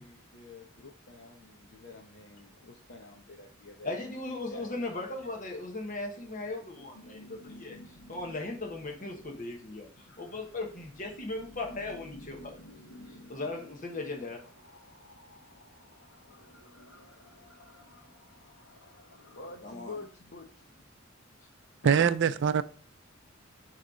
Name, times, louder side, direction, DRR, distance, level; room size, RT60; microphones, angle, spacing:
voice 1, 0.0-4.8 8.7-8.8 10.3-10.4 18.8-18.9 19.3-20.8, left 3 dB, 55° left, 0.9 m, -48 dB
voice 2, 3.8-7.8 8.1-12.6 13.1-14.4 19.6-20.0, left 2 dB, 40° left, 1.2 m, -38 dB
sound 1, 6.3-19.6, equal, 75° left, 1.2 m, -54 dB
voice 3, 21.8-22.6, right 7 dB, 60° right, 0.4 m, -23 dB
6.6 x 3.2 x 4.9 m
head